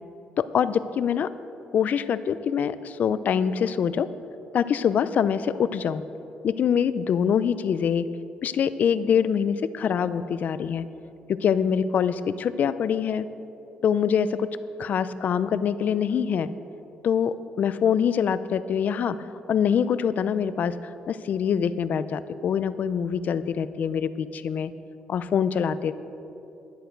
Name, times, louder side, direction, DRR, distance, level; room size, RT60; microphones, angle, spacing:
voice 1, 0.4-1.3 1.7-4.1 4.5-6.0 6.4-8.1 8.4-10.8 11.3-13.3 13.8-14.5 14.8-16.5 17.0-19.2 19.5-20.7 21.1-24.7 25.1-25.9, left 7 dB, 55° left, 14 dB, 0.5 m, -24 dB
13.0 x 10.5 x 4.6 m, 2.9 s
cardioid pair, 110°, 3 cm